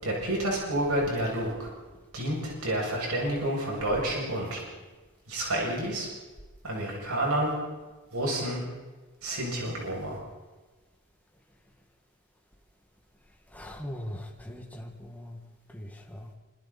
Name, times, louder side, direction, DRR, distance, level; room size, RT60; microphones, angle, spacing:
voice 1, 0.0-1.7 2.1-4.6 5.3-6.1 6.6-7.5 8.1-8.6 9.2-10.2, right 1 dB, 80° right, -3 dB, 7.6 m, -29 dB
voice 2, 13.5-15.4 15.7-16.3, left 1 dB, 5° left, 1 dB, 2.2 m, -40 dB
25.5 x 25.0 x 4.4 m, 1.3 s
head